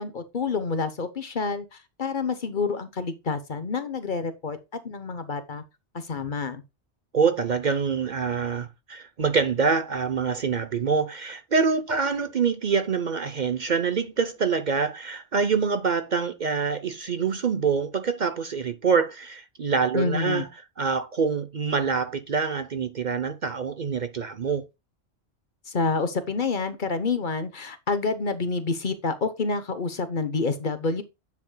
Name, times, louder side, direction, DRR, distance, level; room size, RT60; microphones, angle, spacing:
voice 1, 0.0-4.6 4.8-5.6 5.9-6.6 19.9-20.5 25.7-31.0, left 4 dB, 50° left, 1.0 m, -28 dB
voice 2, 7.1-20.5 20.8-24.6, right 5 dB, 45° right, 0.8 m, -25 dB
9.4 x 7.5 x 2.2 m
omnidirectional pair, 1.1 m